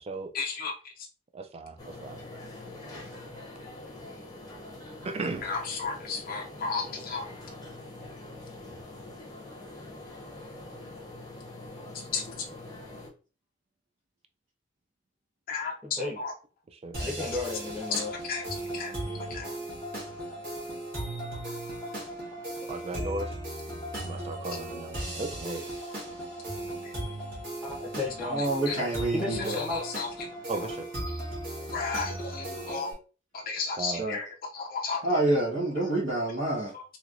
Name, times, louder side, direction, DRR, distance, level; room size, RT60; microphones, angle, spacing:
voice 1, 0.3-0.7 5.4-7.3 12.1-12.2 15.5-16.3 18.2-18.4 18.7-18.9 19.3-19.5 26.8-26.9 28.7-28.9 29.3-30.1 30.5-30.7 31.1-31.2 31.6-32.9 33.3-35.0 36.7-36.8, left 4 dB, 50° left, 0.4 m, -34 dB
voice 2, 1.3-1.8 2.0-2.2 5.0-5.5 16.8-17.0 22.7-23.3 24.0-25.7 30.5-30.9 33.8-34.0, right 3 dB, 35° right, 0.4 m, -35 dB
sound 1, 1.8-13.1, left 2 dB, 20° left, 0.7 m, -44 dB
voice 3, 15.8-16.2 17.0-18.1 27.6-28.4 29.1-29.9, left 3 dB, 5° right, 0.9 m, -34 dB
sound 2, 16.9-32.9, right 1 dB, 50° right, 1.4 m, -37 dB
voice 4, 18.9-19.5 28.3-29.6 34.0-34.2 35.0-36.7, right 2 dB, 80° right, 1.1 m, -28 dB
3.1 x 2.8 x 2.5 m
head